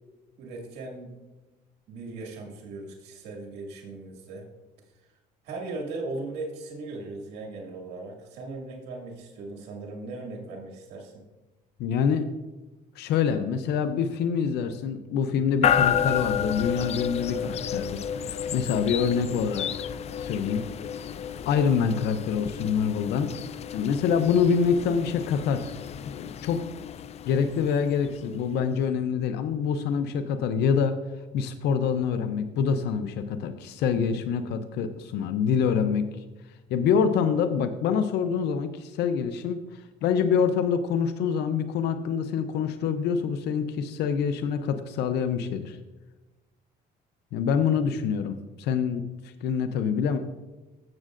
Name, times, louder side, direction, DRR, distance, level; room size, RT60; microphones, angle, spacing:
voice 1, 0.4-1.1 1.9-4.5 5.4-11.2, right 2 dB, 80° right, 0 dB, 2.1 m, -38 dB
voice 2, 11.8-12.3 13.0-20.6 21.5-23.3 23.7-25.7 26.2-26.6 27.3-31.0 31.3-36.1 36.7-45.8 47.3-50.2, left 6 dB, 80° left, 9 dB, 0.6 m, -26 dB
sound 1, 15.6-28.6, left 8 dB, 40° left, 0.4 m, -31 dB
14.0 x 7.4 x 2.5 m, 1.1 s
cardioid pair, 110°, 17 cm